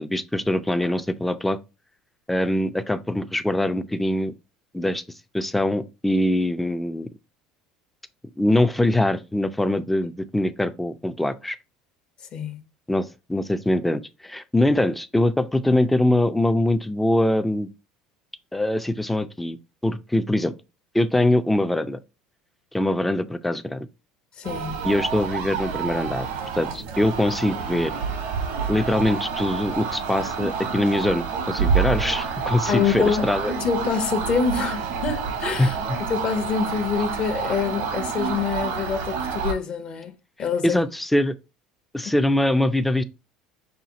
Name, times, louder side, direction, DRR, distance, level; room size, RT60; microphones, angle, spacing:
voice 1, 0.0-1.6 2.3-4.3 4.7-5.0 5.3-7.1 8.4-11.6 12.9-17.7 18.5-19.6 19.8-20.5 20.9-22.0 22.7-23.9 24.8-26.3 26.5-27.9 28.7-33.5 35.6-36.0 40.6-41.3 41.9-43.0, left 1 dB, 5° left, 0.4 m, -23 dB
voice 2, 24.4-24.8 32.7-33.3 33.5-35.8 36.1-40.1 40.4-40.8 42.0-42.1, left 6 dB, 45° left, 0.8 m, -26 dB
sound 1, 24.4-39.5, right 6 dB, 80° right, 1.1 m, -28 dB
5.7 x 2.3 x 3.8 m
supercardioid pair, 125°, 3 cm